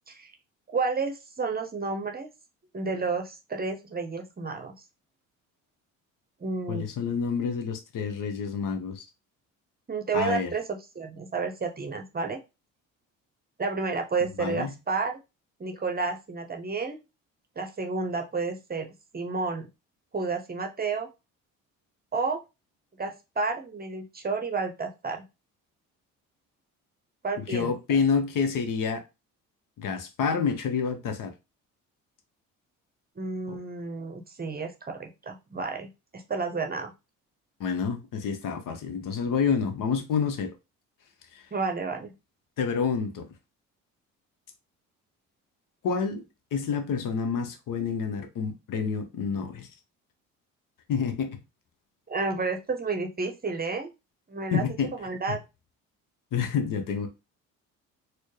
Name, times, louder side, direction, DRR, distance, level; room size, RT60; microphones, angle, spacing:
voice 1, 0.7-2.3 2.7-4.7 6.4-6.8 9.9-12.4 13.6-15.2 15.6-17.0 17.6-18.9 19.1-19.7 20.1-21.1 22.1-22.4 23.0-25.2 27.2-27.7 33.2-36.9 41.5-42.1 52.1-53.9 54.3-54.6 54.9-55.4, right 4 dB, 25° right, 0.8 m, -31 dB
voice 2, 6.7-9.1 10.1-10.5 14.4-14.7 27.4-29.0 29.8-31.3 33.5-33.6 37.6-40.5 41.3-41.4 42.6-43.3 45.8-46.2 46.5-49.7 50.9-51.4 54.5-54.9 55.3-55.4 56.3-57.1, left 6 dB, 55° left, 0.9 m, -28 dB
4.2 x 2.2 x 3.2 m
hypercardioid pair, 55°, 38 cm